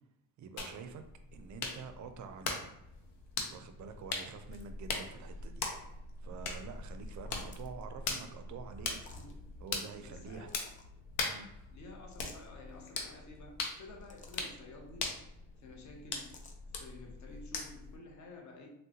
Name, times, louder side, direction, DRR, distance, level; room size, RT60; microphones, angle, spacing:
voice 1, 0.4-1.0 1.3-2.6 3.5-5.6 6.2-9.0 9.6-10.5 11.2-11.5, right 5 dB, 45° right, 8 dB, 0.4 m, -47 dB
sound 1, 0.6-18.0, left 4 dB, 90° left, 0.7 m, -41 dB
sound 2, 7.0-7.8 8.9-9.3 10.3-10.8 12.1-12.5 13.8-14.6 16.2-16.6, left 3 dB, 20° left, 0.4 m, -56 dB
voice 2, 9.2-10.6 11.7-15.2 15.6-16.4 16.8-18.7, left 2 dB, 40° left, 1 dB, 0.8 m, -52 dB
3.6 x 2.2 x 2.8 m, 0.81 s
supercardioid pair, 85°, 44 cm